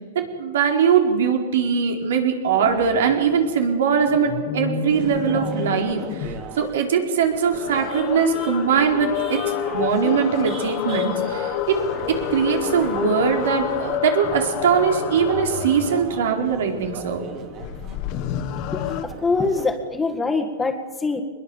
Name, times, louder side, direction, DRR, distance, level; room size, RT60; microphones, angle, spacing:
voice 1, 0.1-9.4 9.7-11.8 12.1-17.3, right 6 dB, 80° right, 3 dB, 4.4 m, -21 dB
sound 1, 2.5-2.9 4.0-6.5 7.2-16.2 17.6-19.0, left 10 dB, 45° left, 1.6 m, -28 dB
sound 2, 4.9-6.7 7.5-14.0 14.2-18.0 18.8-19.7, right 6 dB, 35° right, 2.6 m, -37 dB
voice 2, 18.7-21.2, left 3 dB, 10° left, 5 dB, 1.8 m, -24 dB
23.0 x 21.5 x 7.2 m, 1.5 s
supercardioid pair, 140°, 0 cm